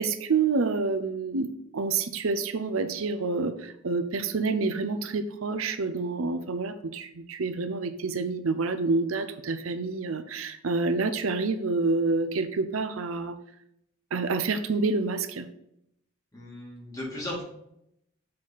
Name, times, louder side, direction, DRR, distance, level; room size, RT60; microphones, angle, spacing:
voice 1, 0.0-13.3 14.1-15.5, right 4 dB, 85° right, 10 dB, 0.6 m, -28 dB
voice 2, 16.3-17.4, left 1 dB, 15° left, -4 dB, 2.4 m, -36 dB
7.6 x 4.2 x 5.7 m, 0.77 s
head